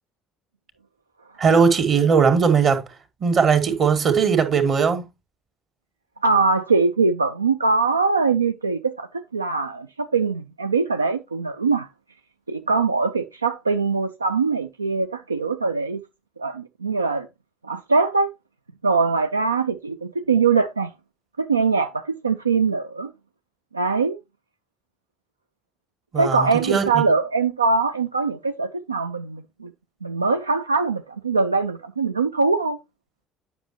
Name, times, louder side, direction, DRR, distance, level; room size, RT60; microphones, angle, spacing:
voice 1, 1.4-2.8 3.2-5.1 26.1-27.0, right 6 dB, 45° right, 1.9 m, -19 dB
voice 2, 6.2-11.9 12.5-16.0 16.4-17.3 17.6-18.3 18.8-20.9 21.4-23.1 23.7-24.2 26.2-29.7 30.0-32.8, right 4 dB, 85° right, 0.3 m, -22 dB
9.8 x 6.2 x 2.9 m
figure-of-eight pair, 55°, 0 cm